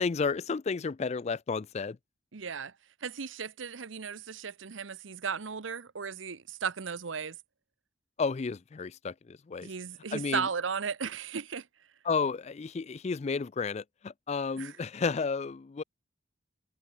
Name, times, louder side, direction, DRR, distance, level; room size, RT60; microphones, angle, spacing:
voice 1, 0.0-2.0 8.2-9.7 10.1-10.5 12.0-15.8, left 5 dB, 35° left, 0.4 m, -32 dB
voice 2, 2.3-2.7 3.0-7.4 9.6-11.7 14.6-14.7, right 6 dB, 90° right, 0.8 m, -35 dB
head